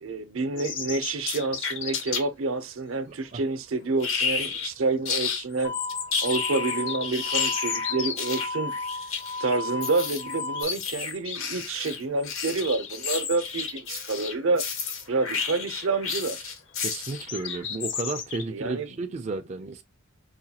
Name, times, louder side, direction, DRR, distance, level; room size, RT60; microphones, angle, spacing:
voice 1, 0.0-5.7 6.2-8.7 9.4-14.6 15.1-16.5 18.5-19.0, right 3 dB, 75° right, 0.6 m, -28 dB
sound 1, 0.6-2.3 3.8-3.9 4.3-4.4 5.5-8.2 8.9-9.2 9.5-9.6 10.1-11.4 11.8-14.1 14.4-14.5 14.9-15.3 15.8-16.2 17.0-18.4, left 7 dB, 60° left, 0.7 m, -35 dB
sound 2, 1.2-2.2 4.0-4.7 5.0-5.4 5.9-17.3, left 5 dB, 80° left, 1.0 m, -31 dB
voice 2, 3.1-3.4 16.8-19.8, right 3 dB, 35° right, 0.3 m, -33 dB
sound 3, 5.6-10.6, left 3 dB, 35° left, 0.4 m, -34 dB
4.8 x 2.3 x 2.8 m
head